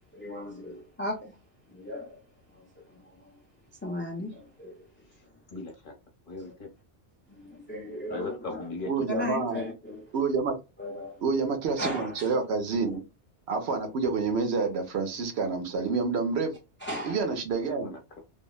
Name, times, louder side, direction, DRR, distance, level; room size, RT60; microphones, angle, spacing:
voice 1, 0.1-1.3 1.7-2.2 2.5-3.2 3.8-4.8 7.4-8.7 9.1-10.1 10.8-11.2 11.8-12.3 16.8-17.2, left 1 dB, 20° left, 0.4 m, -36 dB
voice 2, 5.5-5.9 6.3-6.7 8.1-8.9 9.1-9.2 17.8-18.2, left 3 dB, 50° left, 1.0 m, -38 dB
voice 3, 8.8-9.6 10.1-10.6 11.2-13.0 13.5-16.6 17.0-17.9, right 4 dB, 70° right, 1.0 m, -28 dB
3.4 x 2.1 x 2.3 m
omnidirectional pair, 1.2 m